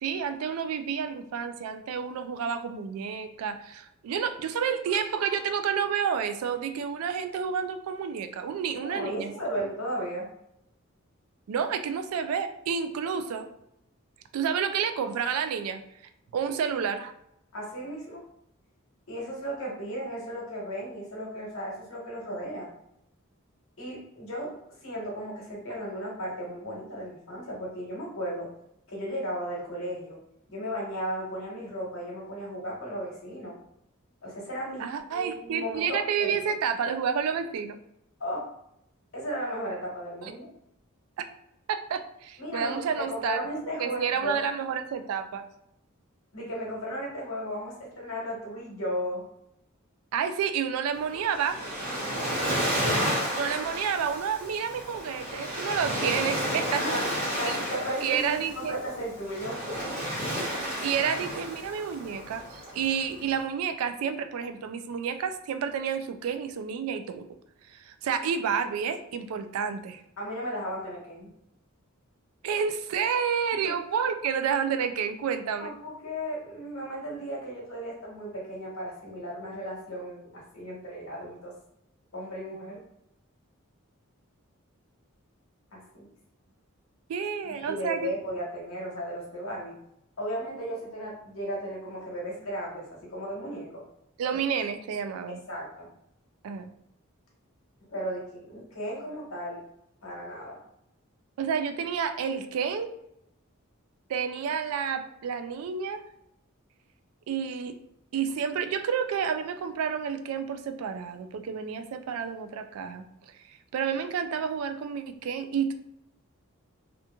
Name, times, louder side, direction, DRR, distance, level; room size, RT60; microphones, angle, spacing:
voice 1, 0.0-9.3 11.5-13.5 14.3-15.8 16.3-17.1 34.8-37.8 40.2-40.3 41.7-43.4 43.8-45.4 50.1-51.6 53.3-56.8 57.5-57.6 58.0-58.8 60.8-67.3 67.7-70.0 72.4-75.7 87.1-88.1 94.2-95.4 96.4-96.7 101.4-102.9 104.1-106.0 107.3-107.8 108.1-115.7, right 7 dB, 85° right, 9 dB, 0.3 m, -30 dB
voice 2, 8.7-10.3 17.5-18.2 19.1-22.7 23.8-24.6 24.8-28.5 28.9-30.2 30.5-33.6 34.2-36.4 38.2-38.5 39.1-40.5 42.4-44.4 46.3-49.2 56.7-57.1 57.4-59.6 70.2-71.3 73.6-73.8 75.6-81.5 82.1-82.9 85.7-86.1 87.5-89.8 90.2-93.8 95.3-95.9 97.9-99.6 100.0-100.6, equal, 70° left, -3 dB, 1.1 m, -35 dB
Waves surf, 50.9-63.3, equal, 35° right, 1.1 m, -32 dB
2.9 x 2.4 x 2.2 m, 0.78 s
head